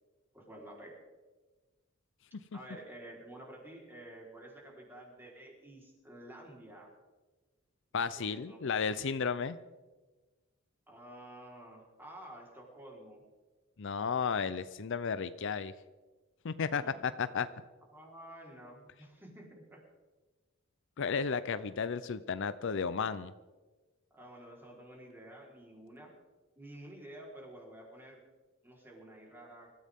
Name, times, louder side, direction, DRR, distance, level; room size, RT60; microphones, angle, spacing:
voice 1, 0.3-1.0 2.5-6.9 8.1-8.8 10.9-13.2 16.7-17.1 17.9-19.8 24.1-26.1 26.6-28.3 28.6-29.7, right 1 dB, 10° right, -2 dB, 4.1 m, -51 dB
voice 2, 7.9-9.6 13.8-15.7 16.4-17.5 21.0-23.3, left 6 dB, 60° left, 13 dB, 0.6 m, -33 dB
25.0 x 14.0 x 3.7 m, 1.3 s
head